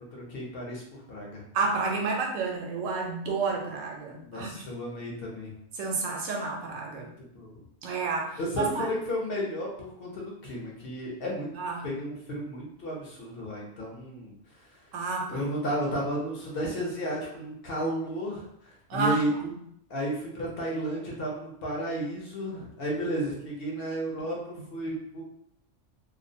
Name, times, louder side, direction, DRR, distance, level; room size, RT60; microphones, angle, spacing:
voice 1, 0.1-0.8 1.1-1.4 4.2-5.5 7.3-7.6 8.4-11.5 11.8-14.3 15.3-19.6 19.9-25.2, equal, 60° left, -2 dB, 0.7 m, -33 dB
voice 2, 1.5-4.5 5.8-7.1 7.8-8.9 11.6-11.9 14.9-15.5 18.9-19.2, right 4 dB, 90° right, 0 dB, 1.0 m, -30 dB
2.4 x 2.0 x 2.6 m, 0.73 s
omnidirectional pair, 1.3 m